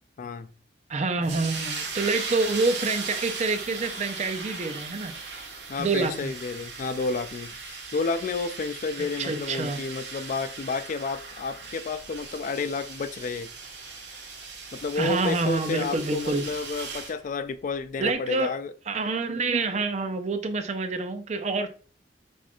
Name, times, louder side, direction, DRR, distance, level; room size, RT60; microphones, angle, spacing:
voice 1, 0.2-0.5 5.7-13.5 14.7-18.7, left 4 dB, 45° left, 0.3 m, -31 dB
voice 2, 0.9-5.1 5.8-6.3 9.2-9.8 15.0-16.4 18.0-18.5 18.9-21.7, right 3 dB, 40° right, 0.5 m, -27 dB
sound 1, 1.2-17.2, right 4 dB, 80° right, 1.4 m, -38 dB
6.2 x 3.0 x 2.3 m
head